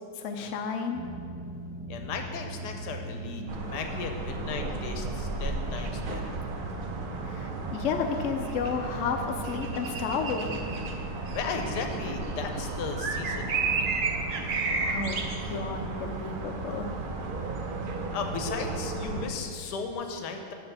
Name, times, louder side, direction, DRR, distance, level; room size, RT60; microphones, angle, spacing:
voice 1, 0.2-1.0 7.2-10.6 14.4-17.0, left 5 dB, 60° left, 4 dB, 0.8 m, -32 dB
sound 1, 0.9-19.4, right 2 dB, 15° right, 0.6 m, -40 dB
voice 2, 1.9-6.4 11.3-13.7 18.1-20.5, left 5 dB, 80° left, 4 dB, 1.3 m, -36 dB
sound 2, 3.5-19.3, right 4 dB, 85° right, 0.4 m, -33 dB
6.8 x 4.3 x 6.6 m, 2.3 s
omnidirectional pair, 1.8 m